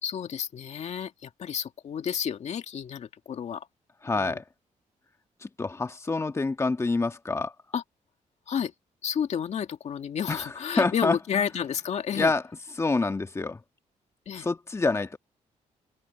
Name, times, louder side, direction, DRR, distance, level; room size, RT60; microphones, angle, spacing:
voice 1, 0.0-3.7 4.1-4.4 7.7-7.8 8.5-8.7 9.0-12.3 14.3-14.5, left 8 dB, 60° left, 2.1 m, -31 dB
voice 2, 4.0-4.4 5.4-7.5 10.3-10.5 10.8-11.2 12.1-12.4 12.8-13.6 14.4-15.2, left 3 dB, 20° left, 1.5 m, -27 dB
cardioid pair, 105°, 13 cm